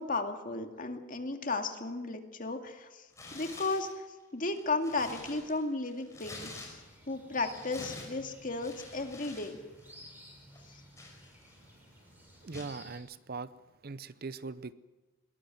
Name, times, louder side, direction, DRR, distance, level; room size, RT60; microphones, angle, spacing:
voice 1, 0.0-3.1 3.3-4.1 4.3-6.5 7.1-9.6, left 3 dB, 40° left, 5 dB, 2.2 m, -34 dB
Tearing, 3.1-3.9 4.4-7.1 7.4-9.5 9.8-10.0 10.5-11.7 12.5-12.8, left 2 dB, 15° left, 5.5 m, -48 dB
sound 1, 6.1-13.0, equal, 10° right, 6.1 m, -55 dB
voice 2, 12.4-13.5 13.8-14.7, right 4 dB, 50° right, 16 dB, 0.6 m, -40 dB
22.0 x 19.0 x 7.6 m, 1.2 s
head